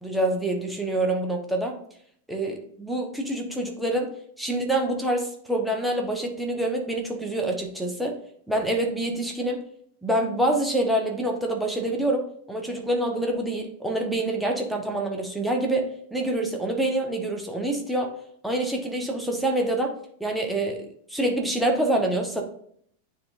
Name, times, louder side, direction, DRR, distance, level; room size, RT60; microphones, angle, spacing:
voice 1, 0.0-1.7 2.3-4.1 4.4-8.2 8.5-9.6 10.0-18.1 18.4-19.9 20.2-22.4, right 1 dB, ahead, 1 dB, 1.2 m, -26 dB
9.4 x 3.8 x 2.7 m, 0.64 s
figure-of-eight pair, 90°, 0 cm